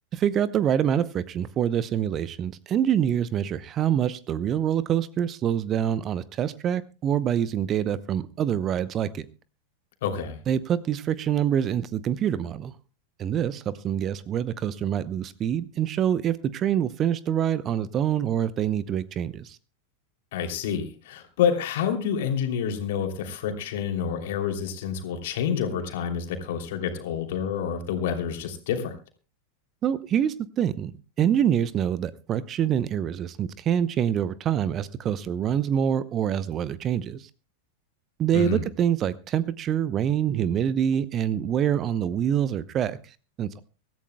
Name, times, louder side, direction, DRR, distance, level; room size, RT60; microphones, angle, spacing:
voice 1, 0.1-9.3 10.5-12.7 13.2-19.6 29.8-30.9 31.2-37.3 38.2-43.6, right 9 dB, 30° right, 17 dB, 0.8 m, -26 dB
voice 2, 10.0-10.4 20.3-28.9 38.3-38.6, left 7 dB, 55° left, 5 dB, 3.0 m, -28 dB
24.5 x 14.0 x 2.3 m, 0.34 s
figure-of-eight pair, 90°, 0 cm